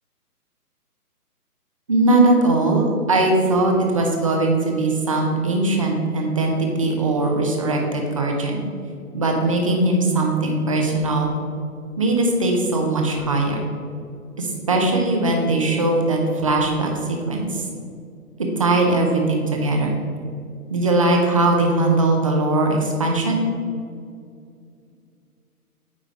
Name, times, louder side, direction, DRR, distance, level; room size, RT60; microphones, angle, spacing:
voice 1, 1.9-8.6 9.1-11.4 12.0-13.6 14.4-17.6 18.6-19.9 20.7-23.4, right 2 dB, 25° right, 1 dB, 0.5 m, -20 dB
9.0 x 3.1 x 5.1 m, 2.3 s
hypercardioid pair, 150°, 46 cm